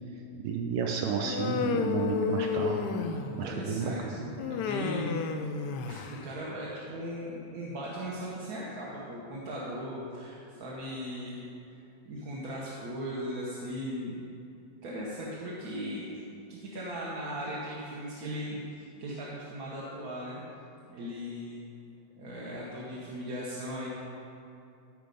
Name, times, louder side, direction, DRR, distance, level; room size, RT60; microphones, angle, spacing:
voice 1, 0.4-2.8 3.4-3.9, right 6 dB, 85° right, 1 dB, 1.4 m, -31 dB
Human voice, 1.2-3.5 4.4-6.2, left 6 dB, 75° left, 1.2 m, -32 dB
voice 2, 3.4-5.2 5.8-11.5 12.0-14.2 14.8-16.1 16.5-20.4 20.9-21.7 22.2-23.9, equal, 60° right, -6 dB, 1.5 m, -38 dB
13.5 x 4.6 x 5.3 m, 2.7 s
omnidirectional pair, 1.9 m